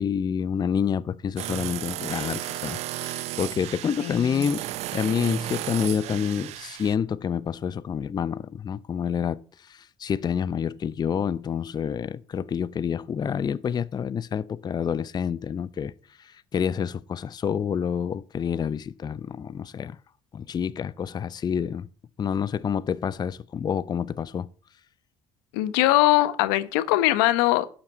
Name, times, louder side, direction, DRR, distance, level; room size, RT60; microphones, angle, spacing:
voice 1, 0.0-4.6 4.9-15.9 16.2-20.0 20.3-21.9 22.2-24.5, left 7 dB, 35° left, 0.6 m, -28 dB
sound 1, 1.4-7.0, right 15 dB, 65° right, 0.6 m, -34 dB
voice 2, 4.0-4.4 25.5-27.7, left 16 dB, 85° left, 1.0 m, -21 dB
11.5 x 5.9 x 7.9 m
supercardioid pair, 70°, 12 cm